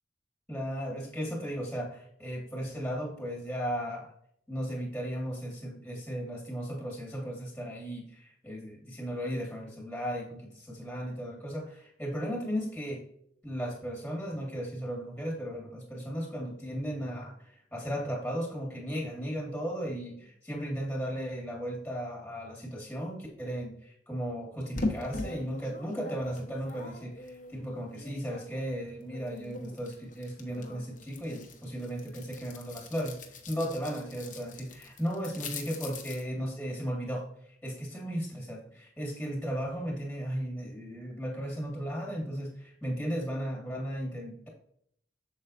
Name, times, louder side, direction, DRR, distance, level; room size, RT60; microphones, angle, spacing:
voice 1, 0.5-4.1 4.5-13.0 13.4-37.3 37.6-44.5, equal, 5° left, -1 dB, 1.7 m, -36 dB
sound 1, 24.8-28.7 29.0-36.2, left 2 dB, 45° left, 1.1 m, -41 dB
7.6 x 7.0 x 2.6 m, 0.67 s
head